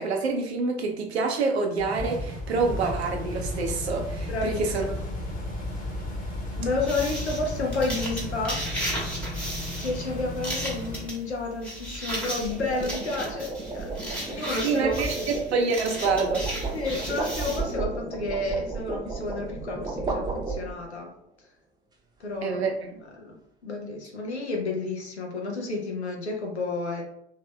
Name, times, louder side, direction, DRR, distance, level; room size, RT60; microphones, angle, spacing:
voice 1, 0.0-4.8 14.2-14.3 14.6-16.5 22.4-22.9, right 4 dB, 75° right, 3 dB, 0.6 m, -27 dB
sound 1, 1.8-11.1, left 1 dB, 25° left, 1.0 m, -34 dB
voice 2, 4.3-4.9 6.6-8.6 9.8-15.2 16.7-21.1 22.2-22.6 23.2-23.4 23.6-27.0, left 2 dB, 85° left, 0 dB, 0.6 m, -31 dB
sound 2, 6.8-7.0 12.1-21.0, right 3 dB, 15° right, 0.5 m, -34 dB
sound 3, 6.9-17.7, right 1 dB, 5° left, 1.2 m, -35 dB
3.2 x 2.8 x 2.2 m, 0.72 s
figure-of-eight pair, 65°, 33 cm